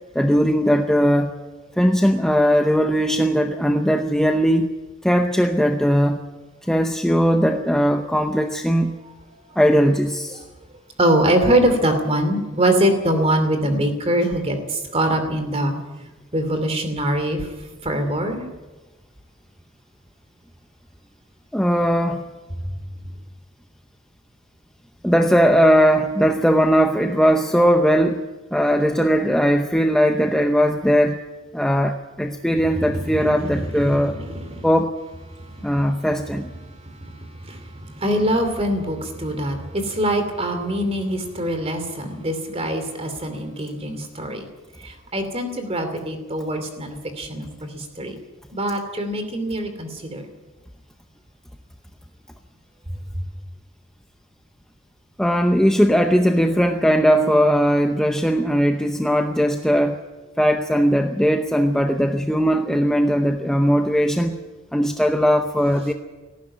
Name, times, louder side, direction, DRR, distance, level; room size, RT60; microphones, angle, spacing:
voice 1, 0.1-1.3 1.8-4.7 5.0-6.2 6.6-9.0 9.6-10.4 21.5-22.2 25.0-28.2 28.5-31.2 31.5-34.1 34.6-34.9 35.6-36.5 55.2-60.0 60.4-64.4 64.7-65.9, equal, 5° left, 4 dB, 0.7 m, -19 dB
voice 2, 11.0-15.7 16.3-17.5 17.8-18.4 33.2-34.7 37.0-37.1 37.4-44.5 44.8-48.2 48.5-50.2, right 1 dB, 30° right, 8 dB, 2.8 m, -23 dB
18.5 x 14.5 x 9.9 m, 1.2 s
head